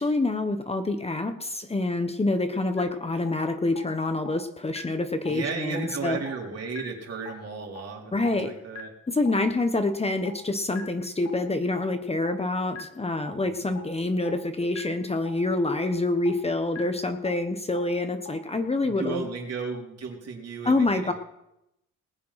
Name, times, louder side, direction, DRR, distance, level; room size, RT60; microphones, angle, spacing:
voice 1, 0.0-6.2 8.1-8.6 9.1-19.2 20.6-21.1, left 2 dB, 20° left, 8 dB, 1.2 m, -26 dB
sound 1, 2.8-2.9 3.3-3.4 3.8-3.9 4.3-4.4 4.7-4.8 5.3-5.4 5.8-5.9 6.3-6.4 6.7-6.8 7.3-7.4 7.8-7.9 8.3-8.4 8.7-8.8 9.3-9.4 9.8-9.9 10.3-10.4 10.7-10.8 11.3-11.4 11.8-11.9 12.3-12.4 12.7-12.8 13.3-13.4 13.8-13.9 14.3-14.4 14.7-14.8 15.3-15.4 15.8-15.9 16.3-16.4 16.7-16.8 17.3-17.4 17.8-17.9 18.3-18.4, left 7 dB, 60° left, 2.3 m, -39 dB
voice 2, 5.3-8.9 13.6-13.8 18.8-21.1, right 4 dB, 55° right, 0 dB, 3.9 m, -34 dB
20.0 x 7.4 x 5.8 m, 0.85 s
cardioid pair, 90°, 30 cm